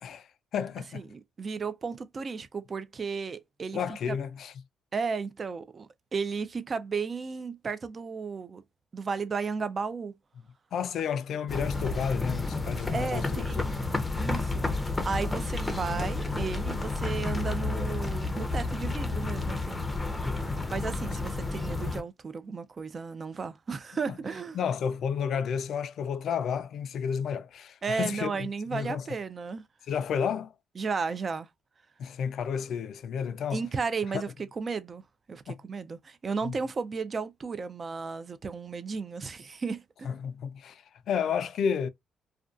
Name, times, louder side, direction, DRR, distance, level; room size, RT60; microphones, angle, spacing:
voice 1, 0.0-1.0 3.7-4.5 10.7-13.7 24.1-24.2 24.5-29.0 29.9-30.5 32.0-33.6 34.1-34.2 35.5-35.6 36.4-36.6 40.0-41.9, left 7 dB, 70° left, 0.3 m, -31 dB
voice 2, 0.9-3.8 4.1-4.2 4.9-8.6 8.9-10.1 12.9-13.7 14.2-14.7 15.0-19.9 20.7-24.6 27.8-29.6 30.8-31.5 33.5-35.0 35.3-40.1, right 5 dB, 40° right, 0.4 m, -34 dB
sound 1, 11.5-22.0, left 3 dB, 15° left, 0.5 m, -31 dB
2.4 x 2.2 x 2.3 m
cardioid pair, 90°, 0 cm